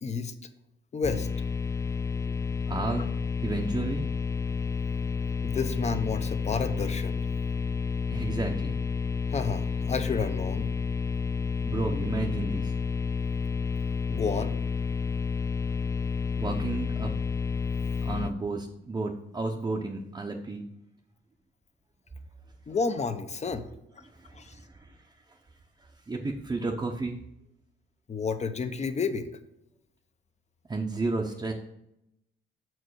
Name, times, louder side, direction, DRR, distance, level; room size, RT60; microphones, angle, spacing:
voice 1, 0.0-0.3 0.9-1.3 5.4-7.2 9.3-10.7 14.1-14.5 22.7-23.7 24.3-24.6 28.1-29.3, left 5 dB, 35° left, 9 dB, 0.8 m, -30 dB
sound 1, 1.0-18.3, left 5 dB, 15° left, 0.3 m, -30 dB
voice 2, 2.7-3.1 3.4-4.1 8.1-8.8 11.6-12.7 16.4-17.1 18.0-20.7 24.0-25.4 25.8-27.2 30.7-31.5, right 3 dB, 20° right, 1 dB, 0.8 m, -32 dB
6.2 x 4.7 x 6.2 m, 0.82 s
cardioid pair, 90°, 20 cm